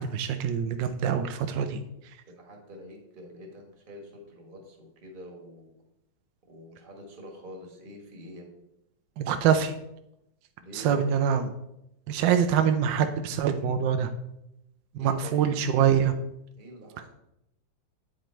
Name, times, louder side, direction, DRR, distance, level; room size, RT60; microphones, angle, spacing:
voice 1, 0.0-1.8 9.2-9.7 10.7-11.5 12.1-14.1 14.9-16.1, right 8 dB, 75° right, 8 dB, 1.2 m, -24 dB
voice 2, 2.3-5.7 6.5-8.4 10.6-11.2 15.0-15.5 16.6-17.1, equal, 30° right, 1 dB, 1.4 m, -45 dB
9.2 x 5.1 x 4.3 m, 0.84 s
omnidirectional pair, 2.2 m